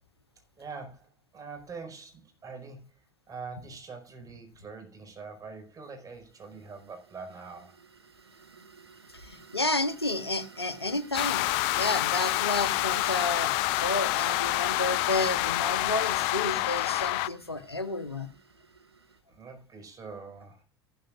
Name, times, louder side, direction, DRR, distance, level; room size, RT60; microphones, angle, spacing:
voice 1, 0.6-7.8 19.3-20.6, right 4 dB, 25° right, 4.7 m, -44 dB
sound 1, 5.8-19.2, right 5 dB, 80° right, 1.4 m, -53 dB
voice 2, 9.1-11.5 11.7-18.3, left 2 dB, 85° left, 0.9 m, -31 dB
sound 2, 11.1-17.3, left 18 dB, 50° left, 0.6 m, -27 dB
14.5 x 12.5 x 2.4 m
figure-of-eight pair, 70°, 13 cm